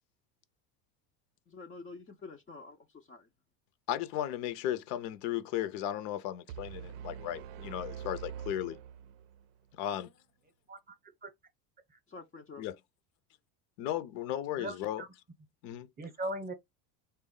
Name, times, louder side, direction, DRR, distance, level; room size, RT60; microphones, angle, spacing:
voice 1, 1.5-3.3 12.1-12.6, left 3 dB, 20° left, 0.3 m, -48 dB
voice 2, 3.9-8.8 9.8-10.1 12.6-12.8 13.8-15.0 15.6-15.9, left 12 dB, 70° left, 0.6 m, -35 dB
sound 1, 6.5-9.5, right 9 dB, 70° right, 0.5 m, -44 dB
voice 3, 14.6-15.1 16.0-16.5, right 1 dB, 20° right, 0.7 m, -38 dB
3.4 x 2.2 x 3.6 m
supercardioid pair, 100°, 48 cm